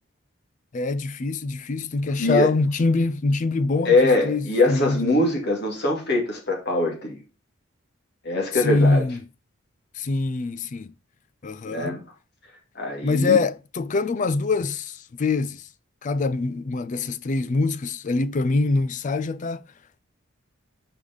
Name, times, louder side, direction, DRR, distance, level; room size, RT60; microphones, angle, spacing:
voice 1, 0.7-5.3 8.5-9.2 9.9-10.9 11.4-12.0 13.0-15.7 16.0-19.6, left 3 dB, 35° left, 0.3 m, -24 dB
voice 2, 2.2-2.5 3.8-7.2 8.2-9.0 11.6-12.0 12.8-13.4, left 2 dB, 50° left, 2.3 m, -22 dB
5.3 x 4.9 x 5.2 m
head